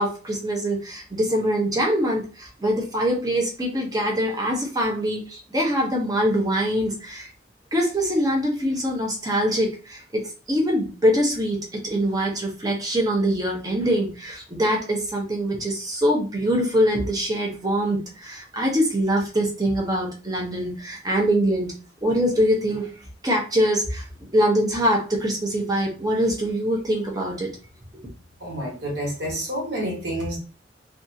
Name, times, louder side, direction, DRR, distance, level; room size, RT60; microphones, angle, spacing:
voice 1, 0.0-7.3 7.7-21.7 22.0-22.9 23.2-24.0 24.3-27.6, equal, 20° right, 0 dB, 0.7 m, -23 dB
voice 2, 28.4-30.4, equal, 65° right, -2 dB, 1.3 m, -29 dB
2.7 x 2.3 x 2.6 m, 0.33 s
head